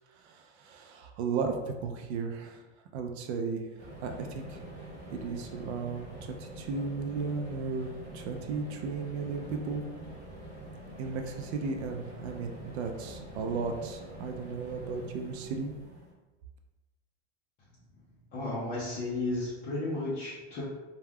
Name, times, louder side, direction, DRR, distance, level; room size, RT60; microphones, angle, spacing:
voice 1, 0.2-2.6 2.9-3.7 4.0-4.6 5.1-9.8 11.0-15.7, right 4 dB, 65° right, 4 dB, 0.5 m, -35 dB
sound 1, 3.8-16.1, right 1 dB, 20° right, 1.0 m, -45 dB
voice 2, 18.3-20.6, left 2 dB, 25° left, -8 dB, 0.4 m, -33 dB
2.3 x 2.2 x 3.3 m, 1.2 s
supercardioid pair, 155°, 35 cm